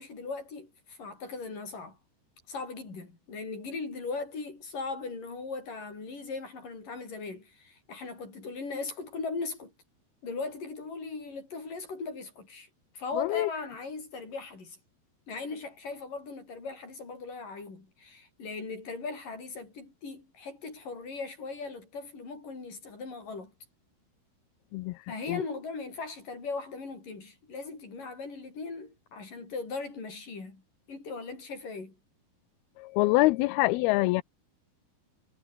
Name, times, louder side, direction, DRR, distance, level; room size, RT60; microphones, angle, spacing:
voice 1, 0.0-2.0 2.5-9.7 10.2-12.7 12.9-14.8 15.3-23.5 25.1-30.6 30.9-32.0, left 4 dB, 55° left, 9.1 m, -39 dB
voice 2, 13.2-13.5 24.7-25.0 25.3-25.4 32.8-34.2, left 20 dB, 80° left, 2.5 m, -25 dB
omnidirectional pair, 4.6 m